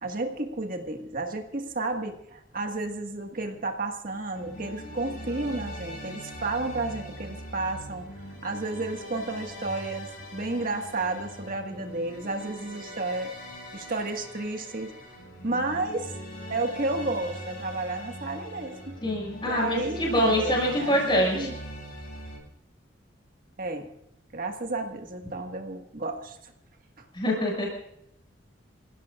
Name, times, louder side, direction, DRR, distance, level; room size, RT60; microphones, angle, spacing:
voice 1, 0.0-8.0 8.4-13.3 13.7-14.9 15.4-16.1 16.5-19.0 19.4-21.5 23.6-23.9 24.3-26.5 27.0-27.1, right 2 dB, 50° right, 4 dB, 1.7 m, -32 dB
sound 1, 4.3-22.4, equal, 50° left, 6.6 m, -41 dB
voice 2, 19.0-21.5 27.1-27.7, equal, 25° left, -2 dB, 6.0 m, -25 dB
26.5 x 16.0 x 2.5 m, 0.78 s
head